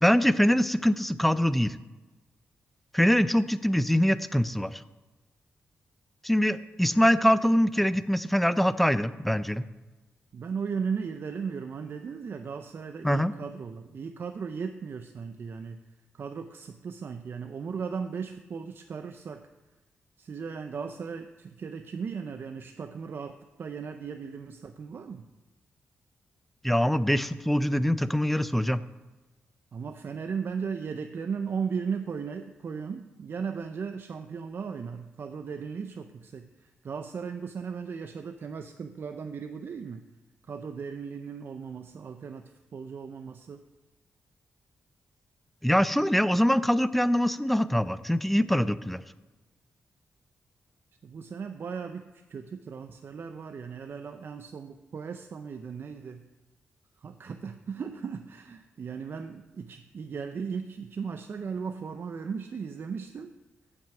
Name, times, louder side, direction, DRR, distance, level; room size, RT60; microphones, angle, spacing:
voice 1, 0.0-1.8 2.9-4.8 6.2-9.6 13.0-13.3 26.6-28.8 45.6-49.0, equal, 5° left, 14 dB, 0.4 m, -24 dB
voice 2, 10.3-15.8 16.1-19.5 20.2-25.3 29.7-40.1 40.5-43.6 51.0-56.3 57.0-63.3, right 6 dB, 55° right, 7 dB, 0.5 m, -36 dB
7.4 x 6.1 x 7.7 m, 1.1 s
cardioid pair, 90°, 5 cm